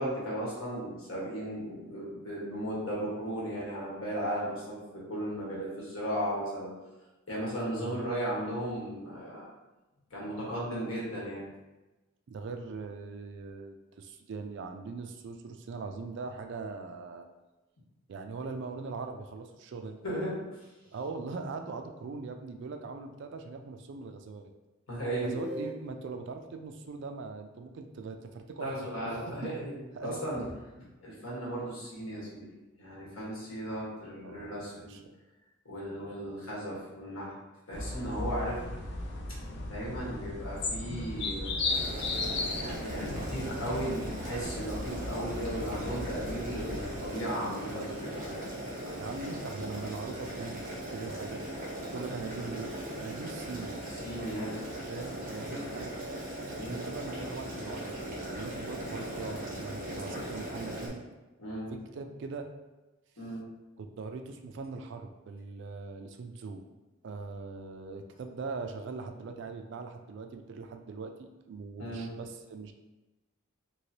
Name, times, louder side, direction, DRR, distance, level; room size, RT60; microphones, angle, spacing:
voice 1, 0.0-6.7 7.3-9.5 10.1-11.4 20.0-20.6 24.9-25.3 28.6-29.7 30.0-30.5 30.7-32.5 32.8-35.0 35.6-37.3 37.7-38.6 39.7-41.8 42.5-48.4 52.1-52.3 54.0-54.7 55.5-55.6 56.6-56.8 61.4-61.7 63.2-63.5 71.8-72.1, equal, 85° left, -5 dB, 1.3 m, -36 dB
voice 2, 12.3-17.3 18.1-20.0 20.9-24.5 25.2-29.5 30.0-30.2 34.2-35.1 48.9-51.4 51.9-53.8 54.7-55.9 56.7-61.0 61.7-62.5 63.8-66.6 67.0-72.7, right 4 dB, 60° right, 5 dB, 0.3 m, -41 dB
sound 1, 25.2-26.2, equal, ahead, 1.1 m, -40 dB
sound 2, 37.7-47.1, left 2 dB, 55° left, 0.5 m, -36 dB
Boiling, 41.7-60.9, right 1 dB, 40° right, 0.9 m, -39 dB
3.1 x 2.9 x 2.7 m, 1.1 s
head